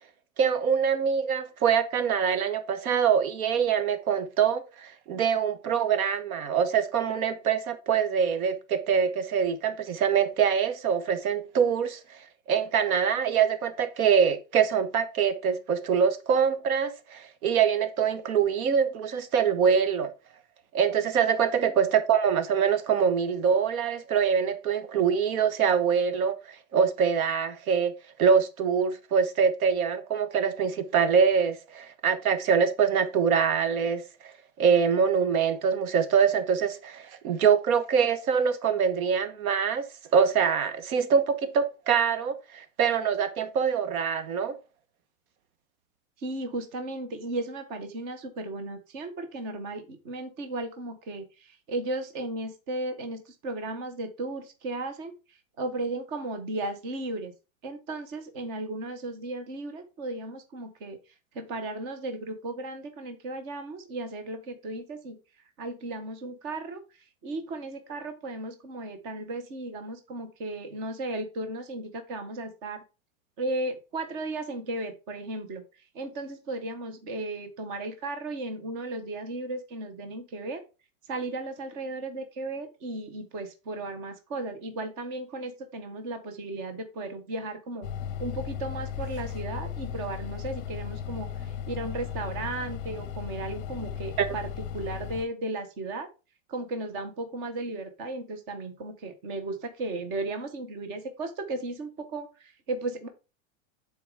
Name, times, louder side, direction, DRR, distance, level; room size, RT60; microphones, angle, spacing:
voice 1, 0.4-12.0 12.5-20.1 20.7-27.9 28.2-34.3 34.6-39.9 40.1-44.6 94.2-94.3, right 7 dB, 85° right, 1.3 m, -24 dB
voice 2, 46.2-55.1 55.6-57.3 57.6-61.0 61.3-65.2 65.6-66.8 67.2-72.8 73.4-75.6 75.9-80.6 81.1-87.9 88.2-94.5 94.7-96.1 96.5-103.1, right 2 dB, 20° right, 0.5 m, -35 dB
sound 1, 87.8-95.2, left 8 dB, 40° left, 0.9 m, -36 dB
9.1 x 4.1 x 3.5 m
supercardioid pair, 175°, 41 cm